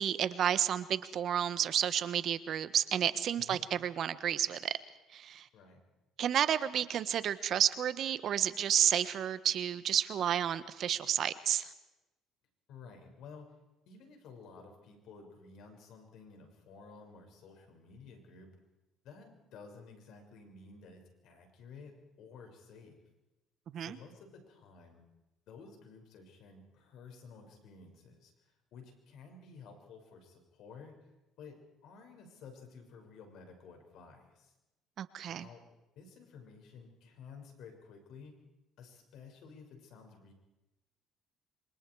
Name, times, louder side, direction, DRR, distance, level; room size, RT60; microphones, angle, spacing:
voice 1, 0.0-4.8 5.1-5.5 6.2-11.7 23.7-24.0 35.0-35.5, right 9 dB, 60° right, 14 dB, 1.2 m, -31 dB
voice 2, 12.7-13.5 13.9-18.6 19.0-23.0 23.8-25.0 25.5-28.3 28.7-30.9 31.4-31.6 31.8-34.5 35.3-35.6 36.0-38.3 38.8-40.3, left 5 dB, 70° left, 4 dB, 6.1 m, -53 dB
27.0 x 25.0 x 4.8 m, 1.0 s
supercardioid pair, 75°, 0 cm